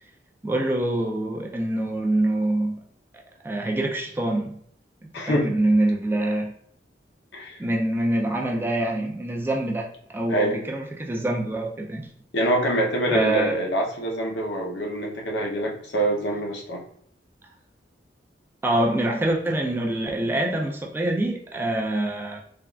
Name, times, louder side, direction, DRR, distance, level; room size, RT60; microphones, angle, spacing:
voice 1, 0.4-2.8 3.4-4.6 5.3-6.5 7.6-12.1 13.1-13.6 18.6-22.4, right 1 dB, 10° right, 0 dB, 0.3 m, -25 dB
voice 2, 5.1-5.5 7.3-7.6 10.3-10.6 12.3-16.8, right 1 dB, 65° left, 0 dB, 0.6 m, -25 dB
3.4 x 2.3 x 2.2 m, 0.65 s
head